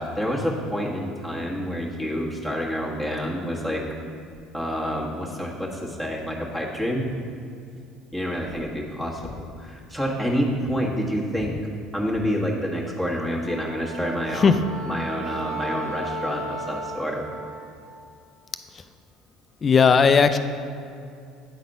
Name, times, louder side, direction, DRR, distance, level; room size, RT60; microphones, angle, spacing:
voice 1, 0.0-3.8 4.5-7.1 8.1-11.6 11.9-14.5 14.8-17.2, equal, 10° right, -3 dB, 1.5 m, -28 dB
Wind instrument woodwind instrument, 13.4-17.8, right 2 dB, 85° right, 1.4 m, -35 dB
voice 2, 19.6-20.4, left 5 dB, 35° left, 10 dB, 0.4 m, -16 dB
8.9 x 4.1 x 5.4 m, 2.4 s
hypercardioid pair, 75°, 0 cm